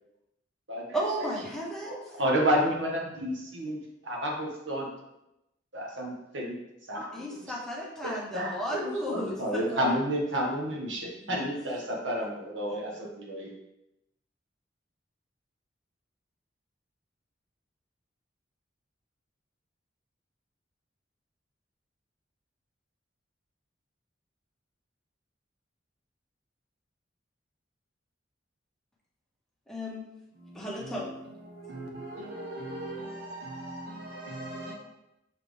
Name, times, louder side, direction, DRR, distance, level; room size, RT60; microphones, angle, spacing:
voice 1, 0.9-2.1 7.1-9.9 11.2-11.6 29.7-30.0 30.5-31.1, equal, 5° left, 1.5 m, -34 dB
voice 2, 1.8-4.9 5.7-6.6 6.9-7.2 8.0-13.5, equal, 85° right, 1.4 m, -30 dB
voice 3, 30.4-31.1 31.4-34.7, right 1 dB, 60° right, 1.0 m, -40 dB
6.8 x 4.3 x 3.4 m
head